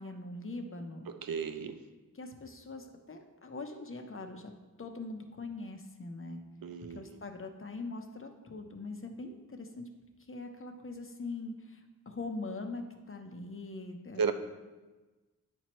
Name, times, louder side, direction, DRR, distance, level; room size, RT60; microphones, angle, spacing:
voice 1, 0.0-1.1 2.1-4.5 4.8-6.4 6.9-9.9 10.2-14.2, left 3 dB, 35° left, 5 dB, 0.8 m, -42 dB
voice 2, 1.1-1.8 6.6-7.2 14.2-14.3, right 6 dB, 85° right, 8 dB, 0.6 m, -34 dB
9.8 x 4.5 x 3.1 m, 1.2 s
wide cardioid pair, 70°, 35 cm